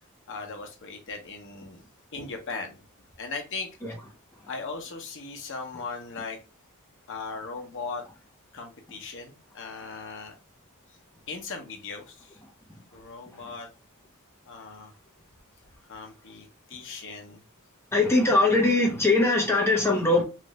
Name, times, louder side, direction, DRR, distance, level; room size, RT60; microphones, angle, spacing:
voice 1, 0.3-1.8 2.1-2.8 3.2-3.7 4.5-6.4 7.1-8.0 8.5-10.3 11.3-12.4 12.9-13.7 14.5-14.9 15.9-17.4, left 4 dB, 60° left, 0.9 m, -38 dB
voice 2, 17.9-20.2, left 2 dB, 10° left, 0.9 m, -21 dB
3.2 x 2.5 x 3.0 m
head